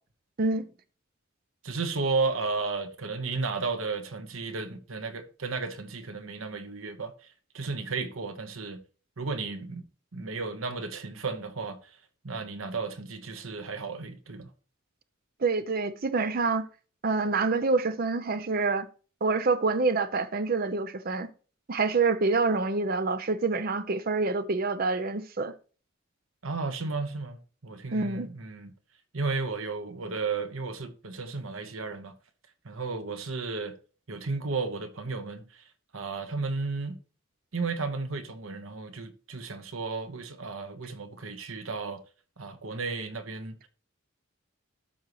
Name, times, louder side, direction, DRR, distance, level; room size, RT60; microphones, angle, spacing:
voice 1, 1.6-7.1 7.5-8.8 9.2-9.8 10.1-11.9 12.2-14.5 26.4-28.7 29.1-32.1 32.6-33.8 34.1-35.6 35.9-37.0 37.5-42.0 42.4-43.6, right 4 dB, 85° right, 1.1 m, -33 dB
voice 2, 15.4-16.7 17.0-18.9 19.2-21.3 21.7-25.5 27.9-28.3, right 3 dB, 45° right, 0.7 m, -27 dB
13.0 x 5.4 x 3.1 m
head